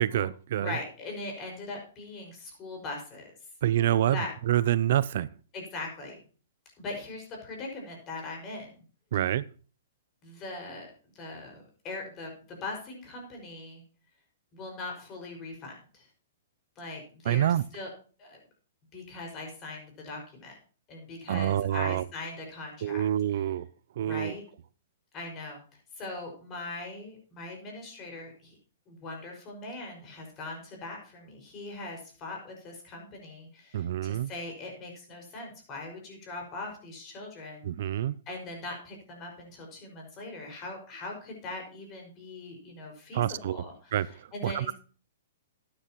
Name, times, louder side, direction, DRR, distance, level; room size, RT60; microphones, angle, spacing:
voice 1, 0.0-0.7 3.6-4.2 4.5-5.3 9.1-9.5 17.3-17.6 21.3-22.0 22.8-23.7 24.0-24.3 33.7-34.3 37.6-38.2 43.1-43.6 43.9-44.7, right 12 dB, 60° right, 0.4 m, -27 dB
voice 2, 0.6-3.3 4.1-4.3 5.5-6.2 6.8-8.7 10.2-13.8 14.5-16.1 16.8-17.9 18.2-18.4 18.9-20.6 20.9-23.1 24.0-24.4 25.1-25.6 25.9-28.6 28.9-37.7 38.3-44.7, left 2 dB, 30° left, 5.5 m, -40 dB
12.5 x 9.9 x 3.0 m
hypercardioid pair, 135°, 0 cm